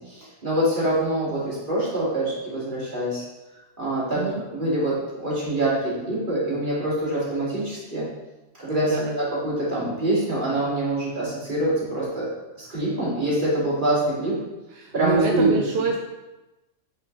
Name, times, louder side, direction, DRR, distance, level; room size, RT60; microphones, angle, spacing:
voice 1, 0.0-3.2 3.8-8.1 8.6-12.3 12.6-14.4 14.9-15.6, right 1 dB, 35° right, -8 dB, 2.8 m, -25 dB
voice 2, 8.8-9.2 14.8-16.0, right 4 dB, 60° right, 2 dB, 0.7 m, -26 dB
8.3 x 5.1 x 3.3 m, 1.1 s
omnidirectional pair, 1.4 m